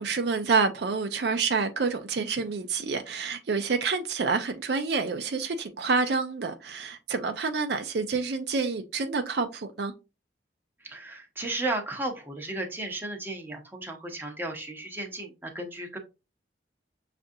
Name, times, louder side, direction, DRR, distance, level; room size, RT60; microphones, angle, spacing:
voice 1, 0.0-9.9, right 4 dB, 65° right, 0.5 m, -28 dB
voice 2, 10.8-16.0, right 2 dB, 10° right, 0.7 m, -34 dB
6.4 x 2.5 x 2.6 m
head